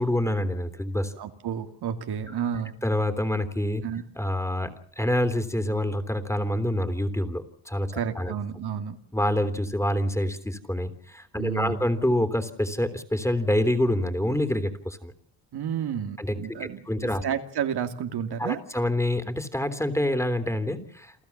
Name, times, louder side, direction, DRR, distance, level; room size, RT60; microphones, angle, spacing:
voice 1, 0.0-1.1 2.8-3.9 4.2-8.3 9.1-15.1 16.2-17.2 18.4-21.2, left 1 dB, 5° left, 11 dB, 3.4 m, -27 dB
voice 2, 1.2-2.8 3.8-4.0 7.9-9.0 11.3-11.8 15.5-18.6, right 8 dB, 70° right, 7 dB, 2.6 m, -31 dB
29.0 x 14.0 x 7.3 m, 0.63 s
cardioid pair, 70°, 41 cm